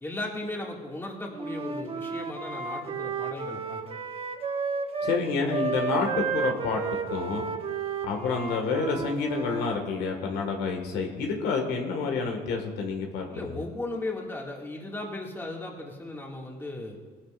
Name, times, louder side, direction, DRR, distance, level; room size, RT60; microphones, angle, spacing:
voice 1, 0.0-4.0 13.3-17.0, left 2 dB, 15° left, -2 dB, 2.2 m, -36 dB
Wind instrument woodwind instrument, 1.3-5.2 5.5-9.8, right 5 dB, 35° right, 1.1 m, -32 dB
voice 2, 5.0-6.8 7.1-7.5 8.0-13.6, left 4 dB, 85° left, 2 dB, 1.9 m, -29 dB
18.0 x 12.5 x 2.5 m, 1.4 s
cardioid pair, 110°, 17 cm